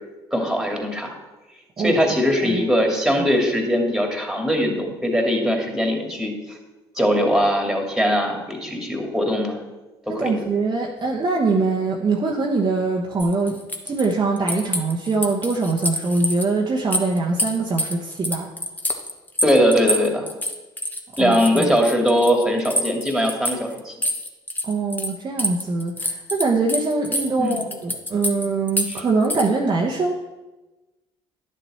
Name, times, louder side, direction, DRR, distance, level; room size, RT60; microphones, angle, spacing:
voice 1, 0.3-1.1 1.8-6.6 6.9-9.6 10.1-10.4 19.4-20.3 21.2-23.9 27.4-27.7 28.9-29.0, equal, 5° right, 1 dB, 2.5 m, -21 dB
voice 2, 10.1-13.6 13.8-18.5 21.2-21.7 24.6-30.1, right 3 dB, 35° right, -1 dB, 1.1 m, -23 dB
sound 1, 13.2-16.4 16.8-25.1 25.4-29.5, left 1 dB, 15° left, 1.2 m, -26 dB
10.5 x 6.9 x 4.3 m, 1.1 s
hypercardioid pair, 60°, 13 cm